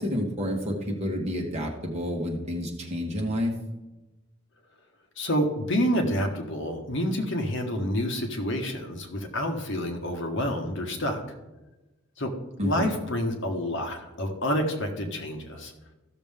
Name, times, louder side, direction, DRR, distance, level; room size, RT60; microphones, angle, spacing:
voice 1, 0.0-3.5 12.6-12.9, equal, 30° right, 0 dB, 1.6 m, -29 dB
voice 2, 5.2-11.2 12.2-12.3 12.6-15.7, equal, 60° left, 3 dB, 1.4 m, -28 dB
14.5 x 6.5 x 3.6 m, 1.1 s
head